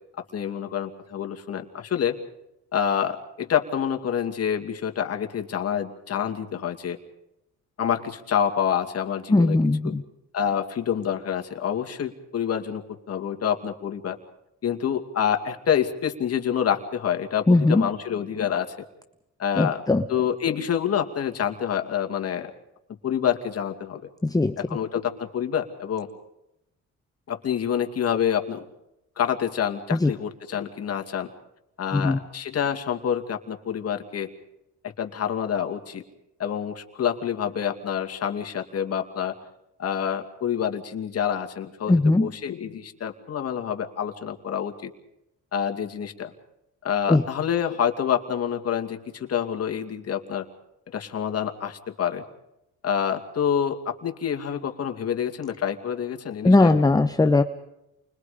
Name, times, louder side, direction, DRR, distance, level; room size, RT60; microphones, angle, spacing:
voice 1, 0.3-2.2 2.7-7.0 7.8-9.6 9.8-10.0 10.3-14.2 14.6-18.7 19.4-19.8 20.1-22.5 23.0-24.0 24.6-26.1 27.3-28.6 29.2-31.3 31.8-34.3 34.8-36.0 36.4-39.3 39.8-44.9 45.5-46.3 46.8-50.5 50.9-52.2 52.8-56.7, left 8 dB, 55° left, 5 dB, 2.4 m, -27 dB
voice 2, 9.3-10.0 17.5-17.9 19.6-20.0 24.2-24.6 29.9-30.1 31.9-32.2 41.9-42.3 47.1-47.2 56.4-57.4, left 2 dB, 10° left, 9 dB, 0.9 m, -19 dB
29.0 x 21.5 x 5.1 m, 0.85 s
cardioid pair, 90°, 30 cm